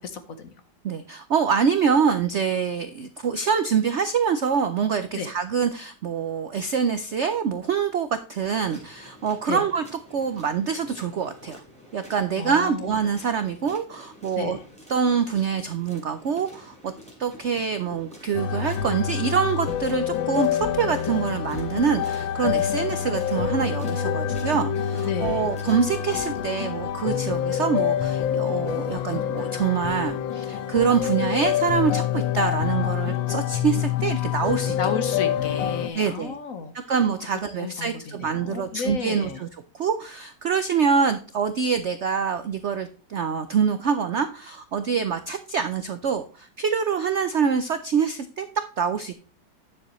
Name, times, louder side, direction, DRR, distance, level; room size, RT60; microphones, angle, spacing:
voice 1, 0.0-0.5 5.1-5.3 9.5-9.6 12.4-12.9 14.3-14.6 25.0-25.5 34.7-36.9 37.6-39.4, left 5 dB, 55° left, 10 dB, 1.2 m, -32 dB
voice 2, 0.8-9.8 10.1-11.6 11.9-14.6 14.9-16.9 17.2-34.8 36.0-36.3 36.9-39.5 39.7-49.1, right 6 dB, 75° right, 10 dB, 0.6 m, -25 dB
sound 1, 8.6-26.4, left 1 dB, 5° left, 3.3 m, -49 dB
sound 2, 18.3-35.9, left 9 dB, 85° left, 1.5 m, -26 dB
9.9 x 7.3 x 3.0 m, 0.38 s
omnidirectional pair, 2.0 m